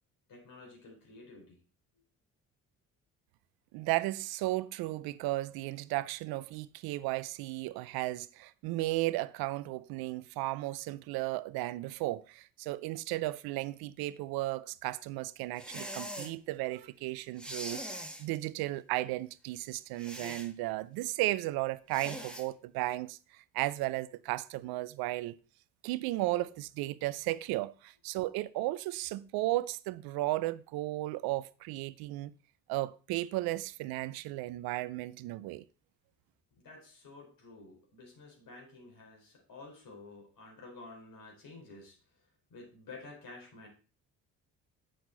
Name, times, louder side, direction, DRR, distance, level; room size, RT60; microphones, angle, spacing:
voice 1, 0.3-1.6 36.6-43.7, left 3 dB, 65° left, 4.2 m, -51 dB
voice 2, 3.7-25.4 25.8-32.3 32.7-35.6, right 18 dB, 80° right, 0.6 m, -35 dB
sound 1, 15.6-16.3 17.4-18.3 20.0-20.5 21.9-22.5, equal, ahead, 1.6 m, -42 dB
7.8 x 6.3 x 3.9 m
supercardioid pair, 60°, 36 cm